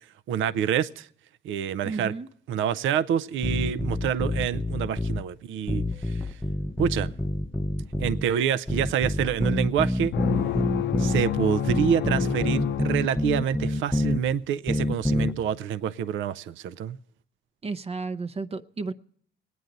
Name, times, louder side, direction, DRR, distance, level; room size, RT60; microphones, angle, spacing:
voice 1, 0.3-1.1 1.4-2.1 2.5-6.2 6.8-7.1 8.0-10.1 11.0-17.0, right 8 dB, 75° right, 0.5 m, -27 dB
voice 2, 1.8-2.3 17.6-18.9, right 4 dB, 30° right, 0.6 m, -32 dB
sound 1, 3.4-5.2 5.7-8.3 8.7-11.2 11.7-14.2 14.7-15.3, left 1 dB, 5° left, 0.6 m, -27 dB
sound 2, 10.1-13.7, left 10 dB, 65° left, 0.6 m, -30 dB
23.0 x 9.4 x 3.9 m
cardioid pair, 90°, 20 cm